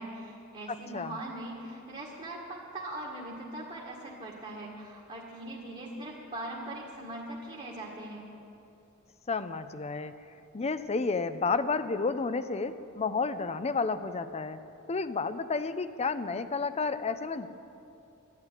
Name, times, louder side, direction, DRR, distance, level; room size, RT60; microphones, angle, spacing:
voice 1, 0.0-8.3, right 1 dB, 30° right, -4 dB, 1.8 m, -41 dB
voice 2, 0.7-1.2 9.3-10.1 10.5-14.6 14.9-17.5, left 4 dB, 30° left, 12 dB, 0.6 m, -31 dB
12.0 x 11.5 x 9.8 m, 2.8 s
head